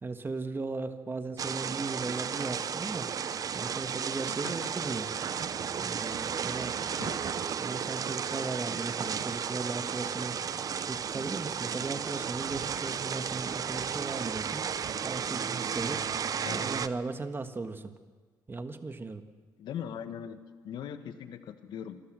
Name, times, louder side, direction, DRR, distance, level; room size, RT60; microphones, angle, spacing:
voice 1, 0.0-5.1 5.7-7.0 7.6-16.2 16.5-17.9 18.5-19.2, right 3 dB, 30° right, 8 dB, 1.6 m, -37 dB
sound 1, 1.4-16.9, right 7 dB, 50° right, 0.8 m, -33 dB
voice 2, 7.0-7.4 16.4-16.7 19.6-20.4 20.6-22.0, left 8 dB, 70° left, 9 dB, 1.6 m, -40 dB
27.0 x 14.0 x 7.7 m, 1.5 s
supercardioid pair, 75°, 8 cm